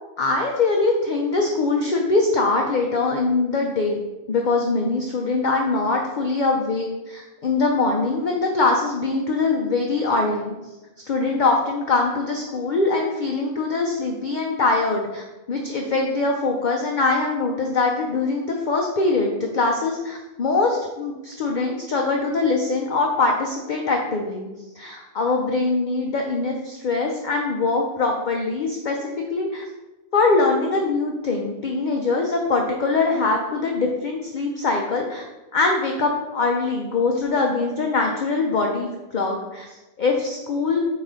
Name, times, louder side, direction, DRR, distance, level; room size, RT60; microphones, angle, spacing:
voice 1, 0.2-4.0 4.3-10.5 11.1-24.5 24.8-29.7 30.1-35.2 35.5-40.8, left 3 dB, 50° left, 1 dB, 0.5 m, -23 dB
4.9 x 3.7 x 5.2 m, 1.1 s
omnidirectional pair, 1.4 m